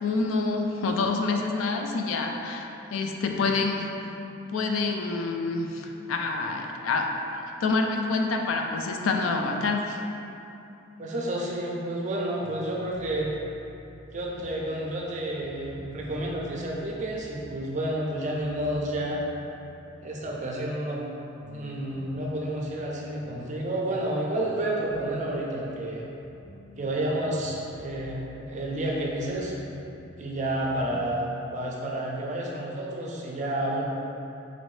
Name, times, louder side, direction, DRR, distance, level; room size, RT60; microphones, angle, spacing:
voice 1, 0.0-3.9 4.5-7.1 7.6-10.0, left 3 dB, 80° left, 3 dB, 0.4 m, -27 dB
voice 2, 11.0-13.3 14.1-19.2 20.0-21.0 21.5-26.1 26.8-29.5 30.2-33.8, right 1 dB, 35° right, -2 dB, 0.5 m, -30 dB
sound 1, 12.4-31.0, equal, 10° right, 0.8 m, -48 dB
4.0 x 2.6 x 3.1 m, 2.8 s
head